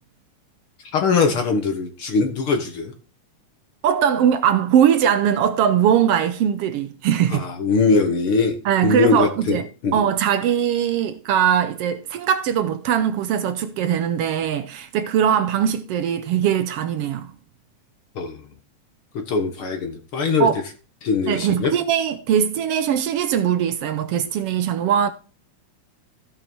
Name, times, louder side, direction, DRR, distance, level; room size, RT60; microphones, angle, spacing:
voice 1, 0.9-2.9 7.3-8.5 8.8-9.6 9.8-10.0 18.2-18.3 19.3-20.5 21.0-21.7, left 4 dB, 55° left, 1.8 m, -21 dB
voice 2, 3.8-7.5 8.6-17.3 20.4-20.6 21.2-25.1, right 9 dB, 80° right, 1.4 m, -21 dB
15.0 x 5.9 x 4.6 m
omnidirectional pair, 3.6 m